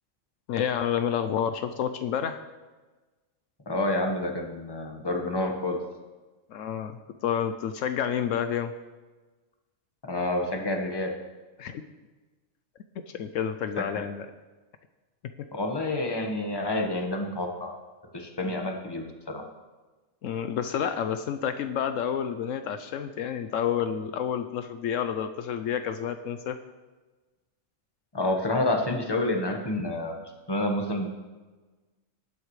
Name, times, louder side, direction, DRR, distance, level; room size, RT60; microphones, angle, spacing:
voice 1, 0.5-2.4 6.5-8.7 11.6-11.8 13.1-14.3 18.4-18.6 20.2-26.6, left 8 dB, 75° left, 9 dB, 1.0 m, -29 dB
voice 2, 3.7-5.8 10.1-11.1 13.8-14.0 15.5-17.8 18.1-19.4 28.1-31.1, left 2 dB, 20° left, 2 dB, 1.3 m, -29 dB
19.0 x 8.3 x 3.2 m, 1.2 s
omnidirectional pair, 1.4 m